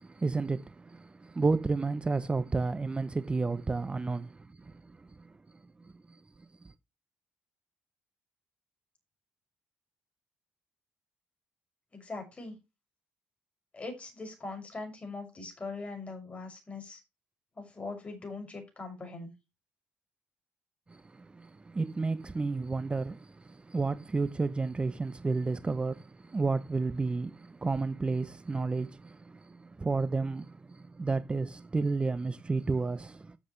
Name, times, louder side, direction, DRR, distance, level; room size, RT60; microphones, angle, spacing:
voice 1, 0.0-6.2 6.6-6.7 20.9-33.4, right 3 dB, 25° right, 0.7 m, -32 dB
voice 2, 11.9-12.6 13.7-17.0 17.5-19.3, left 3 dB, 30° left, 6.5 m, -41 dB
13.0 x 7.7 x 3.2 m
supercardioid pair, 75°, 4 cm